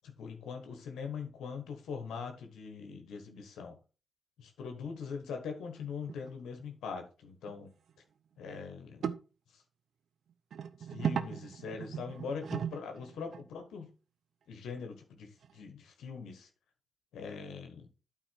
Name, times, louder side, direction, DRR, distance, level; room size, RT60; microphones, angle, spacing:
voice 1, 0.2-3.8 4.4-7.7 8.4-9.0 9.5-9.6 10.9-13.9 14.5-16.5 17.1-17.9, left 5 dB, 85° left, 1.4 m, -42 dB
sound 1, 5.8-6.3 6.6-6.7 7.5-7.6 7.9-8.0 9.0-9.2 10.5-13.5 15.4-15.5, right 8 dB, 75° right, 0.6 m, -37 dB
8.9 x 4.6 x 4.6 m
supercardioid pair, 45°, 0 cm